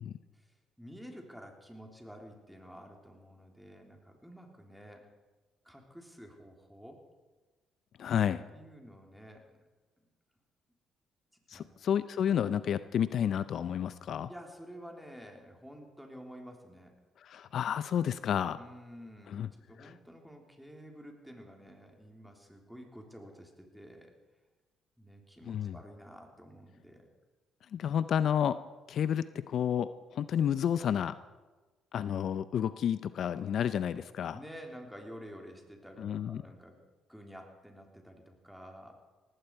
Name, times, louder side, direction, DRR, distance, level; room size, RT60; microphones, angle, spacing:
voice 1, 0.3-5.1 5.6-7.0 8.5-9.5 10.0-10.1 11.5-11.7 12.9-13.0 14.3-17.0 18.5-24.1 25.0-27.1 34.3-36.8 37.1-38.9, equal, ahead, 2 dB, 3.3 m, -50 dB
voice 2, 8.0-8.4 11.5-14.3 17.2-18.6 19.3-19.5 19.8-19.9 25.5-25.8 27.7-28.6 28.9-31.2 31.9-34.4 36.0-36.4, left 9 dB, 60° left, 14 dB, 0.5 m, -31 dB
18.5 x 15.5 x 4.6 m, 1.2 s
cardioid pair, 85°, 0 cm